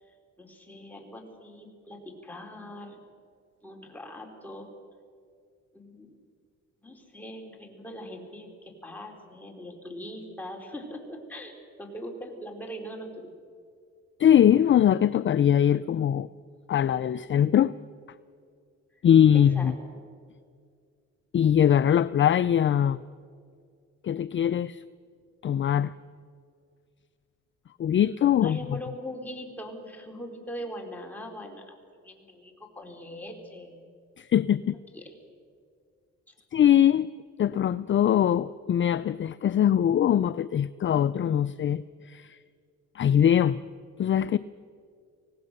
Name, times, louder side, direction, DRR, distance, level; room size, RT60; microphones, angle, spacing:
voice 1, 0.4-3.0 3.6-4.7 5.7-6.1 6.8-13.3 19.3-19.7 28.4-33.8 34.9-35.1 36.3-36.4, equal, 5° left, 1 dB, 4.2 m, -41 dB
voice 2, 14.2-16.3 16.7-17.8 19.0-19.7 21.3-23.0 24.0-24.8 25.4-25.9 27.8-28.8 34.2-34.8 36.5-37.1 37.4-42.4 42.9-43.6 44.0-44.4, left 9 dB, 40° left, 15 dB, 0.5 m, -22 dB
25.0 x 18.0 x 6.7 m, 2.2 s
cardioid pair, 90°, 30 cm